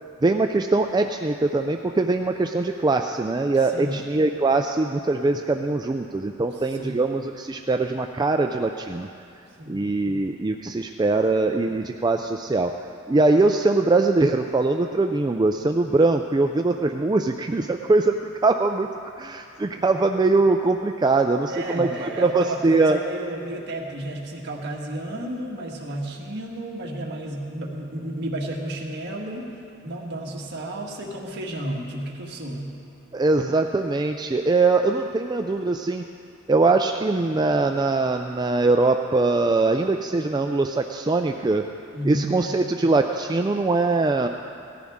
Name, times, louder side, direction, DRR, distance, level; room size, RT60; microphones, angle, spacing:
voice 1, 0.2-9.1 9.7-12.7 13.1-18.9 19.2-23.0 33.1-36.0 36.5-41.6 42.0-44.3, right 3 dB, 20° right, 4 dB, 0.3 m, -22 dB
voice 2, 3.7-4.0 6.8-7.0 9.6-9.8 21.5-29.5 29.8-32.7 41.9-42.3, right 1 dB, 55° right, -1 dB, 1.7 m, -32 dB
18.5 x 14.0 x 3.6 m, 2.5 s
head